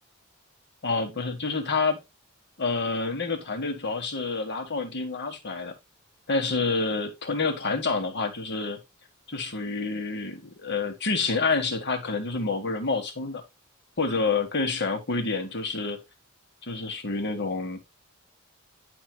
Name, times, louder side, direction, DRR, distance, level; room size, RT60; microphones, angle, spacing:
voice 1, 0.8-2.0 2.6-5.7 6.3-8.8 9.3-13.4 14.0-16.0 16.6-17.8, left 3 dB, 55° left, 1.4 m, -28 dB
10.0 x 4.7 x 2.2 m
head